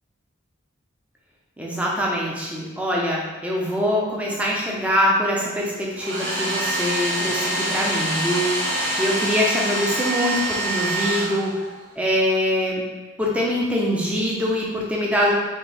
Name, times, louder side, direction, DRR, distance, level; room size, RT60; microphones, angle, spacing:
voice 1, 1.6-11.5 12.0-12.8 13.2-15.3, equal, 5° right, -4 dB, 0.7 m, -23 dB
Domestic sounds home sounds, 6.0-11.8, right 1 dB, 55° right, 0.9 m, -25 dB
4.4 x 3.3 x 3.4 m, 1.2 s
head